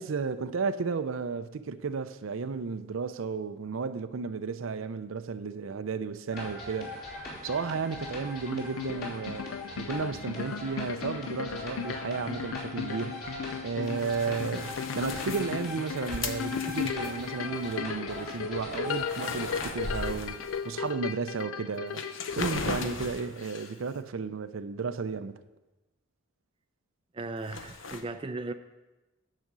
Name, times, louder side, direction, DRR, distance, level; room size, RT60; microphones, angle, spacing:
voice 1, 0.0-6.9 7.4-13.3 13.6-22.0 22.4-25.4, right 5 dB, 80° right, 0.5 m, -33 dB
sound 1, 6.3-20.0, left 2 dB, 50° left, 3.0 m, -41 dB
sound 2, 8.5-22.6, left 7 dB, 85° left, 0.4 m, -36 dB
sound 3, 13.9-17.8 18.2-18.4 18.7-20.9 21.4-21.5 21.9-23.8 27.5-28.0, left 4 dB, 70° left, 0.8 m, -38 dB
voice 2, 27.1-28.5, right 2 dB, 25° right, 0.4 m, -36 dB
9.9 x 5.1 x 7.4 m
head